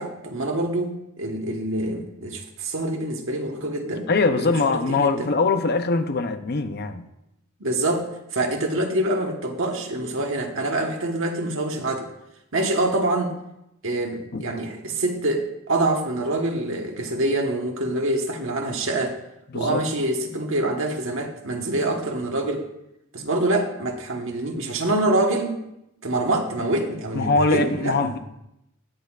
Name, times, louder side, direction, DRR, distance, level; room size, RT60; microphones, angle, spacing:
voice 1, 0.0-5.3 7.6-12.1 12.5-13.4 13.8-19.2 19.5-22.7 23.1-25.6 26.0-28.2, right 2 dB, 70° right, 3 dB, 1.3 m, -25 dB
voice 2, 4.1-7.1 14.3-14.5 19.5-19.8 27.1-28.2, left 3 dB, 50° left, 9 dB, 0.7 m, -22 dB
19.5 x 6.6 x 2.5 m, 0.84 s
head